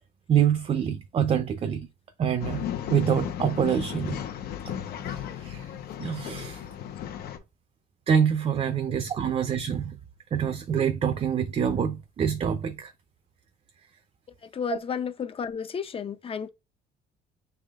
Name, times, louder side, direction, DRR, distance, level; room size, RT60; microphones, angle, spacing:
voice 1, 0.3-1.9 2.2-4.2 5.1-5.7 6.0-6.6 8.1-10.0 10.3-12.9, right 8 dB, 35° right, 0.6 m, -26 dB
Male speech man speaking / Chatter / Rattle, 2.4-7.4, left 10 dB, 65° left, 0.9 m, -35 dB
voice 2, 14.4-16.5, left 6 dB, 35° left, 0.6 m, -32 dB
6.3 x 3.5 x 2.4 m
cardioid pair, 110°, 17 cm